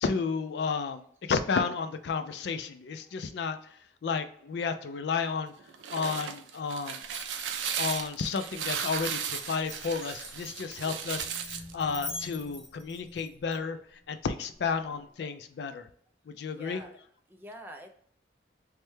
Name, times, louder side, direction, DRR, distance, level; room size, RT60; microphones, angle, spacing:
voice 1, 0.0-5.5 5.9-7.0 7.8-15.9 16.3-16.8, left 5 dB, 70° left, 9 dB, 0.3 m, -32 dB
sound 1, 5.6-11.7, right 8 dB, 90° right, 0.4 m, -36 dB
Glass, 7.1-13.6, left 2 dB, 25° left, 0.7 m, -44 dB
sound 2, 9.9-15.2, left 1 dB, 30° right, 0.8 m, -53 dB
voice 2, 16.5-17.0 17.3-17.9, equal, 10° right, 3 dB, 0.3 m, -47 dB
3.2 x 2.1 x 3.1 m, 0.62 s
head